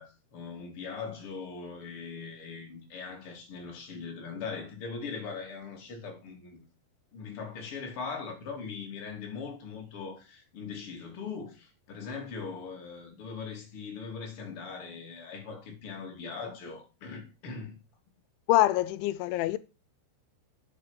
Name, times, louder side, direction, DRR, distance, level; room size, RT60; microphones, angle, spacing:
voice 1, 0.0-6.6 7.1-17.7, left 5 dB, 35° left, 3.0 m, -40 dB
voice 2, 18.5-19.6, left 16 dB, 90° left, 3.0 m, -25 dB
9.2 x 7.7 x 5.2 m
omnidirectional pair, 5.3 m